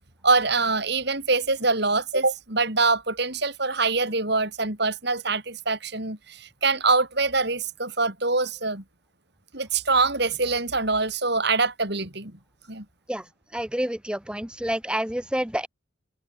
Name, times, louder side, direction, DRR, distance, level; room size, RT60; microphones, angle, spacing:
voice 1, 0.2-8.8 9.5-12.3 12.7-12.8, right 3 dB, 55° right, 4.9 m, -24 dB
voice 2, 13.5-15.7, right 1 dB, 5° right, 0.8 m, -28 dB
open air
head